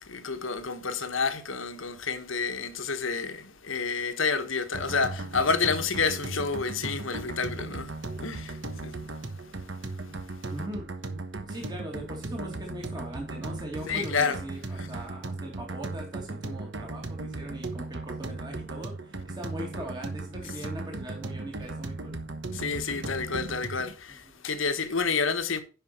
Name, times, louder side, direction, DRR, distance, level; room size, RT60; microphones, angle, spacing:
voice 1, 0.0-7.9 8.2-9.0 13.9-14.4 14.8-14.9 22.5-25.6, left 5 dB, 75° left, 1.4 m, -29 dB
sound 1, 4.7-23.9, right 2 dB, 60° right, 1.2 m, -37 dB
voice 2, 10.5-10.8 11.5-22.2 24.1-24.5, equal, 20° right, 2.3 m, -40 dB
10.5 x 5.6 x 4.3 m
head